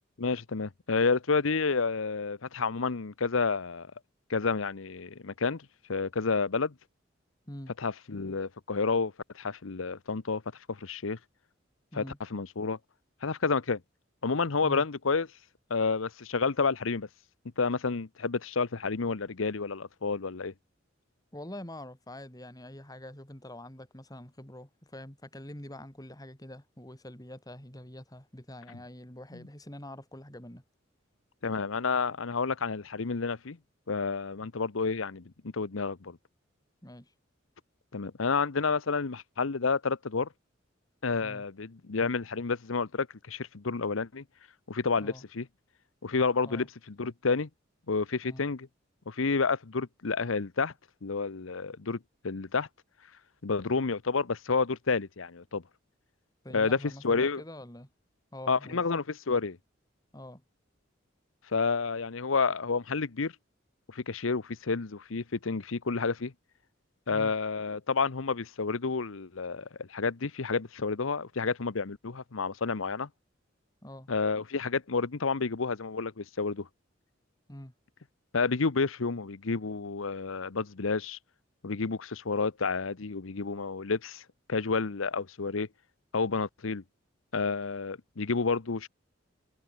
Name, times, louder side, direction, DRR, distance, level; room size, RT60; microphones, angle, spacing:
voice 1, 0.2-3.9 4.3-5.6 5.9-6.7 7.8-10.4 10.7-11.2 11.9-12.0 12.3-12.8 13.2-13.8 14.2-15.3 15.7-17.1 17.6-20.5 31.4-33.6 33.9-36.2 37.9-40.3 41.0-44.2 44.7-45.4 46.0-46.7 47.0-47.5 47.9-48.7 49.1-50.7 51.0-52.0 52.2-52.7 53.4-55.6 56.5-56.8 57.0-57.4 58.5-59.6 61.5-63.3 63.9-66.3 67.1-73.1 74.1-76.7 78.3-81.2 81.6-84.2 84.5-85.7 86.1-86.8 87.3-88.9, left 4 dB, 90° left, 0.9 m, -30 dB
voice 2, 21.3-30.6 36.8-37.1 41.2-41.5 45.0-45.2 46.5-46.7 48.2-48.5 56.4-57.9 58.3-58.8 60.1-60.4 67.1-67.3 73.8-74.1 77.5-77.7, left 1 dB, 20° left, 3.5 m, -45 dB
head